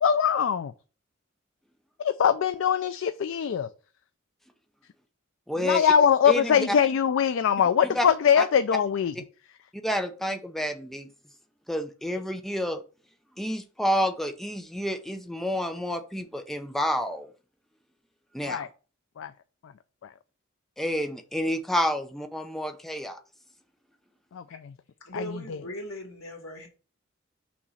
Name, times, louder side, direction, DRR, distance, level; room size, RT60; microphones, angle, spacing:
voice 1, 0.0-0.7 2.0-3.7 5.6-9.1 18.4-18.7 19.2-19.3 20.0-20.1 24.3-24.7 25.1-25.2, left 7 dB, 65° left, 0.4 m, -22 dB
voice 2, 5.5-5.9 6.3-6.6 7.8-8.1 8.4-8.5 9.8-11.1 11.7-12.8 13.4-17.3 18.3-18.6 20.8-23.2, equal, ahead, 0.5 m, -29 dB
voice 3, 25.0-26.7, equal, 90° left, 2.1 m, -39 dB
6.2 x 3.0 x 5.6 m
head